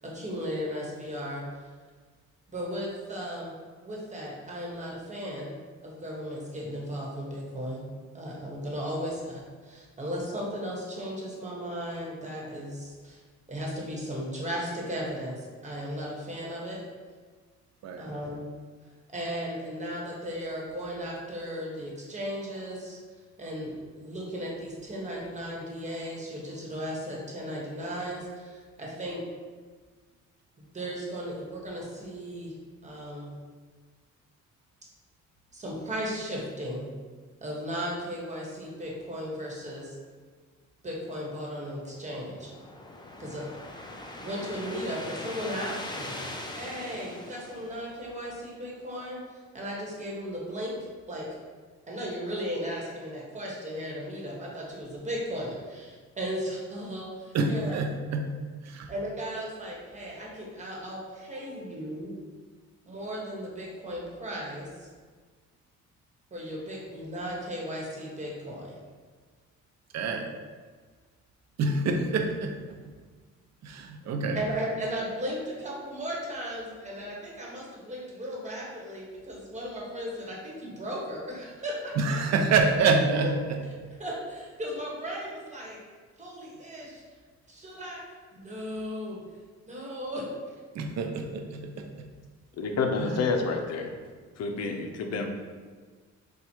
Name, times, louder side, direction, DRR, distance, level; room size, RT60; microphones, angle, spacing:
voice 1, 0.1-1.4 2.5-3.5 3.8-5.5 5.8-7.8 8.1-13.2 13.5-16.8 18.0-18.5 19.1-23.0 23.4-29.2 30.6-32.5 32.8-33.3 35.5-36.9 37.4-40.0 40.8-42.5 43.2-43.4 44.2-50.7 51.1-51.3 51.9-57.8 58.9-62.1 62.8-64.9 66.3-68.8 74.3-81.9 84.0-85.8 86.2-87.0 87.5-88.0 88.3-89.2 89.7-90.6, equal, 25° right, -4 dB, 1.3 m, -36 dB
sound 1, 41.8-48.3, left 1 dB, 15° left, 0.5 m, -41 dB
voice 2, 57.3-58.3 58.6-58.9 61.3-61.8 69.9-70.3 71.6-72.8 73.6-74.5 82.0-83.6 90.7-92.1 93.0-93.3, right 3 dB, 60° right, 4 dB, 0.6 m, -27 dB
voice 3, 92.6-93.9 94.4-95.3, left 4 dB, 55° left, 4 dB, 0.6 m, -29 dB
4.3 x 2.4 x 4.5 m, 1.5 s
cardioid pair, 90°, 30 cm